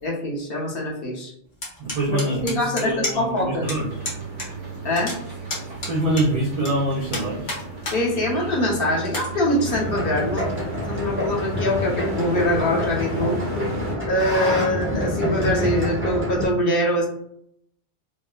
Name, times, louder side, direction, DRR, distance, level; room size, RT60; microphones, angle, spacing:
voice 1, 0.0-1.3 2.1-3.7 4.8-5.1 7.9-10.4 10.8-13.4 14.0-17.1, left 1 dB, 55° left, -2 dB, 0.9 m, -24 dB
sound 1, 1.6-3.4 3.7-3.8 4.0-4.5 4.7-6.7 7.1-8.0 8.4-8.5 9.0-9.3, left 2 dB, 90° left, 1.4 m, -30 dB
voice 2, 1.8-3.9 5.7-7.5, right 1 dB, 60° right, -3 dB, 0.4 m, -25 dB
sound 2, 3.6-13.9, right 3 dB, 90° right, 1.2 m, -34 dB
sound 3, 9.7-16.5, equal, 15° right, 0.6 m, -27 dB
3.7 x 2.0 x 2.3 m, 0.70 s
omnidirectional pair, 1.2 m